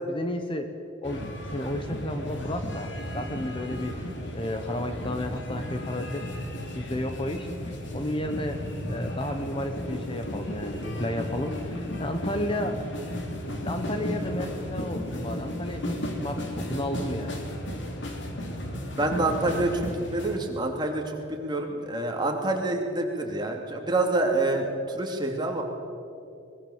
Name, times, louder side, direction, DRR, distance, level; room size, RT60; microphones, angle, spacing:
voice 1, 0.1-0.7 1.0-1.2 1.5-6.3 6.7-7.5 7.9-8.6 8.9-12.8 13.6-17.4, left 1 dB, 25° left, 6 dB, 1.2 m, -32 dB
sound 1, 1.0-20.4, left 1 dB, 65° left, 3.2 m, -34 dB
voice 2, 18.4-25.6, right 2 dB, 20° right, 1 dB, 3.0 m, -27 dB
22.5 x 21.5 x 7.4 m, 2.6 s
head